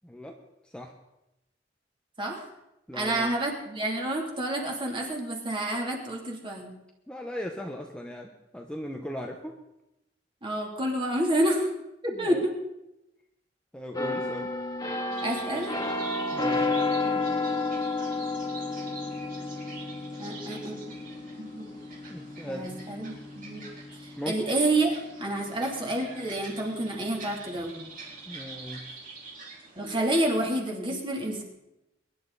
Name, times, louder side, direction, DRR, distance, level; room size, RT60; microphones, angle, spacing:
voice 1, 0.0-0.4 0.7-0.9 2.9-3.3 7.1-9.6 12.1-12.5 13.7-14.5 16.3-16.7 22.1-22.7 24.2-24.4 28.2-28.9, equal, 5° left, 2 dB, 1.0 m, -38 dB
voice 2, 2.9-6.7 10.4-11.7 12.2-12.5 15.2-15.7 17.0-17.2 20.2-20.8 21.4-21.7 22.5-23.6 24.3-27.8 29.7-31.4, right 1 dB, 30° right, 0 dB, 3.1 m, -29 dB
sound 1, 14.0-25.5 25.9-26.2, left 3 dB, 20° left, 2.0 m, -32 dB
sound 2, 15.1-30.6, right 3 dB, 50° right, 4.1 m, -46 dB
23.0 x 11.0 x 4.1 m, 0.91 s
head